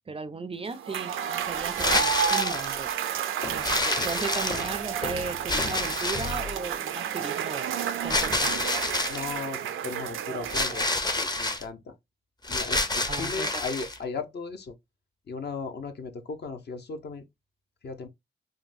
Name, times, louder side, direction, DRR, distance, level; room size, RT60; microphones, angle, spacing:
voice 1, 0.1-2.9 3.5-7.7 8.0-8.7 13.1-13.6, right 4 dB, 30° right, 0.4 m, -36 dB
Cheering / Applause / Crowd, 0.7-11.2, right 9 dB, 85° right, 0.4 m, -31 dB
sound 1, 1.7-2.7 3.6-4.9 5.5-6.4 8.1-9.2 10.5-11.6 12.4-14.0, left 2 dB, 20° left, 0.6 m, -28 dB
Walk footsteps, 3.4-6.7, left 4 dB, 80° left, 1.5 m, -39 dB
voice 2, 9.1-12.0 12.5-14.7 15.3-17.2 17.8-18.1, left 4 dB, 55° left, 0.7 m, -36 dB
3.7 x 2.2 x 2.5 m
cardioid pair, 60°, 20 cm